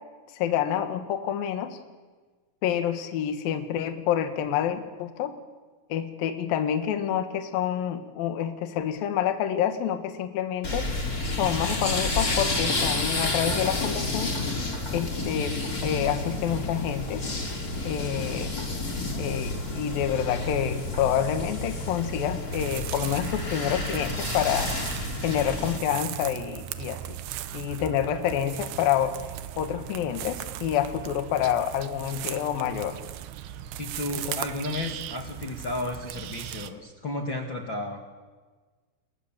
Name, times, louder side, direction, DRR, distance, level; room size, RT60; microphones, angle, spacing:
voice 1, 0.3-1.8 2.6-5.3 5.9-10.9 11.4-14.4 14.9-15.6 15.8-17.2 17.8-18.6 19.2-24.7 25.2-27.2 27.5-29.2 29.6-33.0 34.3-34.4, left 10 dB, 60° left, 7 dB, 2.9 m, -28 dB
sound 1, 10.6-25.8, left 2 dB, 20° left, 3.2 m, -30 dB
sound 2, 22.5-36.7, right 12 dB, 75° right, 2.6 m, -37 dB
voice 2, 33.8-38.0, left 2 dB, 45° left, 1 dB, 1.7 m, -33 dB
28.5 x 23.0 x 7.4 m, 1.4 s
omnidirectional pair, 5.2 m